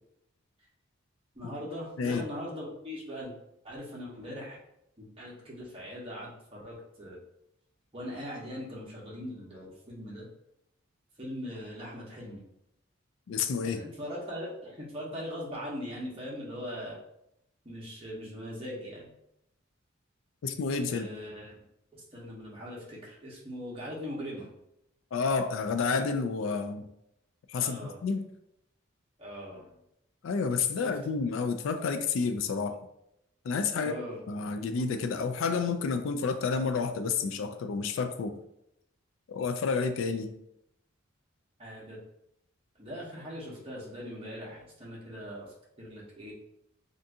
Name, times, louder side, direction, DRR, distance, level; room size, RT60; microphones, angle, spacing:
voice 1, 1.3-3.3 3.6-4.6 5.0-7.2 7.9-10.3 11.2-12.4 13.6-17.0 17.6-19.1 20.9-21.6 21.9-24.5 27.5-28.0 29.2-29.7 30.8-30.9 33.7-34.2 41.6-42.0 42.8-45.5 45.8-46.3, equal, 25° right, -5 dB, 0.9 m, -40 dB
voice 2, 13.3-13.8 20.4-21.1 25.1-26.9 27.5-28.3 30.2-32.8 33.4-33.9 34.3-38.3 39.3-40.3, left 5 dB, 70° left, 8 dB, 0.3 m, -30 dB
2.7 x 2.5 x 3.5 m, 0.79 s
head